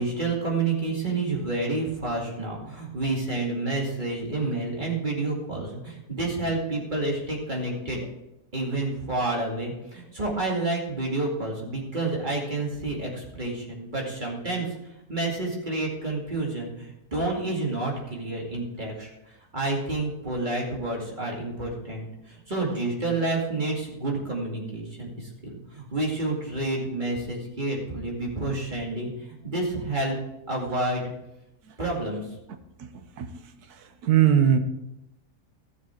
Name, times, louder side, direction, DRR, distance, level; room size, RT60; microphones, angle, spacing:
voice 1, 0.0-8.1 8.5-14.7 15.1-19.1 19.5-30.1 30.5-31.0 31.8-32.3, right 2 dB, 30° right, -2 dB, 2.4 m, -29 dB
voice 2, 34.0-34.6, right 9 dB, 80° right, 8 dB, 1.4 m, -19 dB
13.5 x 7.2 x 4.5 m, 0.91 s
omnidirectional pair, 1.6 m